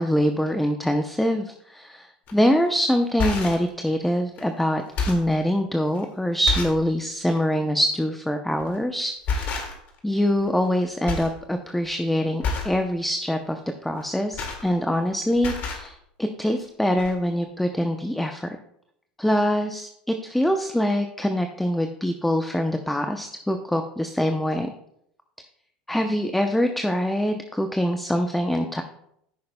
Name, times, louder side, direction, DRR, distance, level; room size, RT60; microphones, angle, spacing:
voice 1, 0.0-9.6 10.0-18.6 19.2-24.7 25.9-28.8, equal, 5° left, 6 dB, 0.6 m, -24 dB
sound 1, 2.3-2.5 3.0-3.7 4.4-4.5 4.8-5.4 6.0-6.1 6.5-6.9 7.2-7.4 8.6-8.8 9.3-10.0 10.3-10.8 11.1-11.4 11.7-12.0 12.4-12.8 14.0-15.1 15.3-15.9 16.7-16.8 17.0-17.1, left 4 dB, 50° left, 2.0 m, -29 dB
14.0 x 6.4 x 2.2 m, 0.74 s
hypercardioid pair, 95°, 4 cm